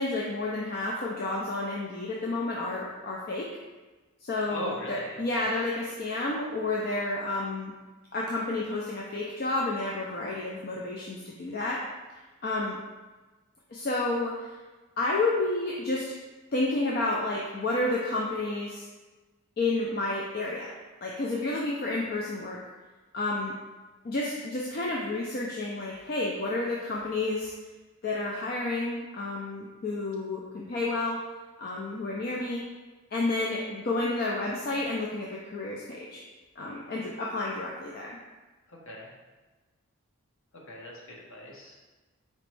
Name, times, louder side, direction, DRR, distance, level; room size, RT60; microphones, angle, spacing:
voice 1, 0.0-3.5 4.2-7.7 8.1-11.8 12.4-12.8 13.7-14.5 15.0-16.0 16.5-18.9 19.6-20.7 21.0-22.6 23.1-23.5 24.0-27.5 28.0-31.2 31.6-32.6 33.1-36.2 36.6-38.2, left 2 dB, 45° left, -3 dB, 0.4 m, -30 dB
voice 2, 4.5-5.4 38.7-39.1 40.7-41.8, equal, 60° left, -2 dB, 0.8 m, -39 dB
4.3 x 3.0 x 3.2 m, 1.2 s
head